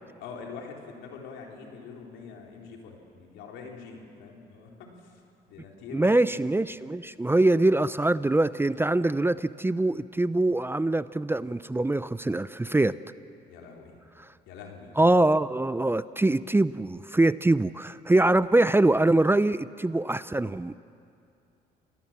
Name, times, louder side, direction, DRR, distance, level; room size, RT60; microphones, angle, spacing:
voice 1, 0.2-4.7 5.5-6.3 13.5-14.0 14.5-14.9, left 5 dB, 80° left, 1 dB, 3.8 m, -44 dB
voice 2, 5.9-13.0 14.2-14.3 15.0-20.8, right 2 dB, 10° right, 16 dB, 0.6 m, -23 dB
27.5 x 19.5 x 7.4 m, 2.5 s
supercardioid pair, 65°, 19 cm